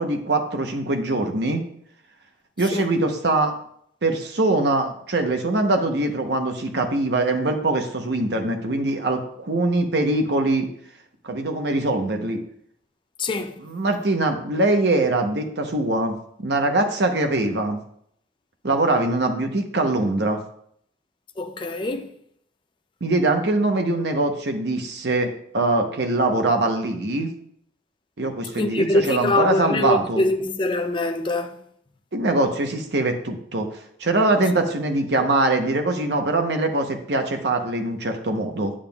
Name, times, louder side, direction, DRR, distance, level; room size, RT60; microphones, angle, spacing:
voice 1, 0.0-1.6 2.6-3.5 4.0-10.7 11.2-12.4 13.6-17.8 18.6-20.4 23.0-27.3 28.2-30.2 32.1-33.7 34.0-38.7, right 2 dB, 60° right, 0.9 m, -22 dB
voice 2, 13.2-13.5 21.4-22.1 28.5-31.6, left 1 dB, 25° left, 0.4 m, -23 dB
8.8 x 7.3 x 2.3 m
head